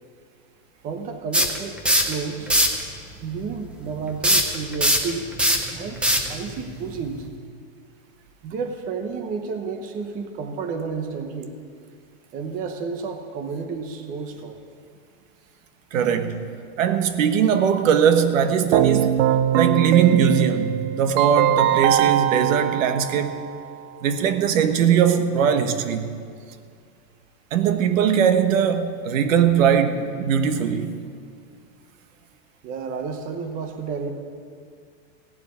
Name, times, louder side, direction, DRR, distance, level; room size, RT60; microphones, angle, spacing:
voice 1, 0.8-2.5 3.2-5.2 5.7-7.3 8.4-11.5 12.3-14.6 32.6-34.1, right 5 dB, 20° right, 5 dB, 0.9 m, -31 dB
sound 1, 1.3-2.1 2.5-2.8 4.2-7.3, equal, 5° right, 0.5 m, -20 dB
voice 2, 15.9-16.4 16.8-19.2 19.5-23.4 24.0-26.1 27.5-31.0, right 8 dB, 75° right, 9 dB, 1.4 m, -20 dB
Keyboard (musical), 18.7-23.7, right 11 dB, 50° right, 0.7 m, -21 dB
16.5 x 7.6 x 9.8 m, 2.2 s
supercardioid pair, 170°, 40 cm